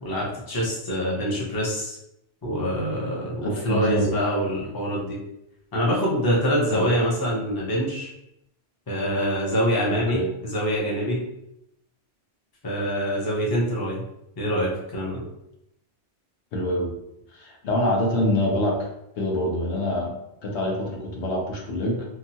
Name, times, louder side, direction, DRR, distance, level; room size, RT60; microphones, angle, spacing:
voice 1, 0.0-2.0 2.4-5.2 5.7-8.1 8.9-11.2 12.6-14.0 14.4-15.2, equal, 25° left, -4 dB, 0.6 m, -25 dB
voice 2, 3.4-4.1 6.7-6.9 9.9-10.3 16.5-16.9 17.3-18.8 19.2-22.1, left 1 dB, 85° left, -1 dB, 1.0 m, -25 dB
2.9 x 2.2 x 2.7 m, 0.82 s
omnidirectional pair, 1.1 m